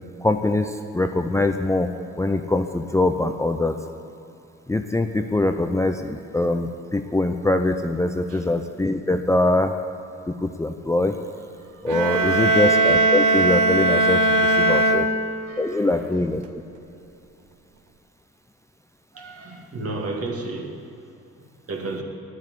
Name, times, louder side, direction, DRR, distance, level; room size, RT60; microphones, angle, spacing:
voice 1, 0.2-1.9 2.2-3.7 4.7-9.7 10.4-11.2 11.8-15.1 15.6-16.4, left 2 dB, 10° left, 6 dB, 0.6 m, -23 dB
voice 2, 11.6-12.6 14.3-15.2 15.4-16.1 19.1-20.7 21.7-22.0, right 2 dB, 50° right, 1 dB, 2.3 m, -35 dB
sound 1, 11.9-15.7, right 2 dB, 75° right, 1.1 m, -19 dB
9.6 x 9.5 x 9.5 m, 2.7 s
cardioid pair, 90°, 30 cm